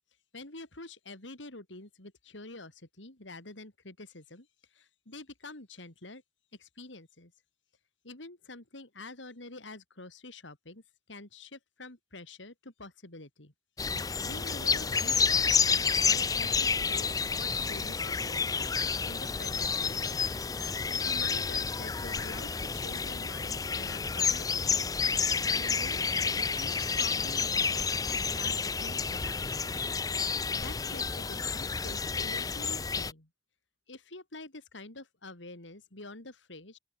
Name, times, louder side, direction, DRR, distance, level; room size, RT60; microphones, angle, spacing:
voice 1, 0.3-6.2 6.6-7.3 8.0-10.8 11.1-13.5 13.9-18.7 19.0-20.2 20.5-24.8 25.5-29.4 29.6-29.8 30.6-33.3 33.9-36.8, left 2 dB, 85° left, 3.9 m, -47 dB
sound 1, 13.8-33.1, left 5 dB, 20° left, 0.5 m, -30 dB
open air
head